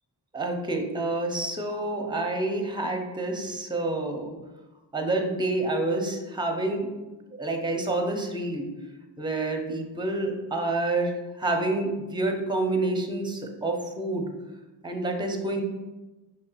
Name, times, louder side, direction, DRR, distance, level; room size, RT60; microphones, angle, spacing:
voice 1, 0.3-4.4 4.9-6.9 7.3-8.7 9.2-14.3 14.8-15.6, right 2 dB, 10° right, 3 dB, 0.6 m, -28 dB
5.2 x 2.7 x 2.3 m, 1.1 s
cardioid pair, 60°, 42 cm